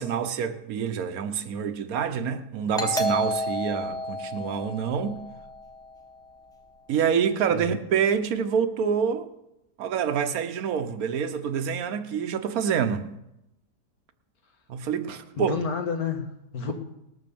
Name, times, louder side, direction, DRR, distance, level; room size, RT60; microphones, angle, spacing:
voice 1, 0.0-5.2 6.9-9.3 9.8-13.0 14.7-15.5, right 7 dB, 65° right, 9 dB, 1.3 m, -27 dB
Doorbell, 2.8-6.1, left 1 dB, 5° left, 1.0 m, -31 dB
voice 2, 15.3-16.7, left 6 dB, 65° left, 4 dB, 2.0 m, -30 dB
18.5 x 6.3 x 6.9 m, 0.87 s
omnidirectional pair, 1.7 m